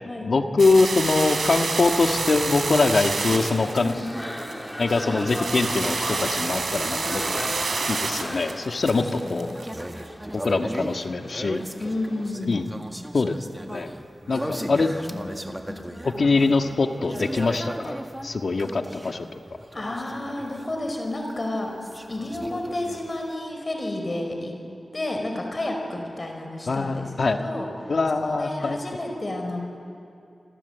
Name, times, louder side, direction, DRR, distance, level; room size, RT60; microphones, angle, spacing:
voice 1, 0.2-4.0 4.8-7.5 7.9-9.5 10.3-11.6 12.5-12.7 13.1-13.4 13.6-13.9 14.3-14.9 16.0-17.9 18.2-19.3 26.7-27.4 27.9-28.8, left 3 dB, 65° left, 5 dB, 1.7 m, -23 dB
sound 1, 0.6-10.0, right 4 dB, 85° right, 3.2 m, -29 dB
sound 2, 3.2-12.3, equal, 10° left, 3.3 m, -36 dB
voice 2, 8.7-9.5 11.8-12.6 14.3-14.8 15.1-15.8 19.7-21.7 22.1-24.5 24.9-27.7 28.2-29.7, left 1 dB, 40° left, 2 dB, 5.0 m, -31 dB
sound 3, 9.5-21.0 21.3-23.3, right 1 dB, 10° right, 1.7 m, -37 dB
28.0 x 26.0 x 8.1 m, 2.5 s
wide cardioid pair, 85°, 0 cm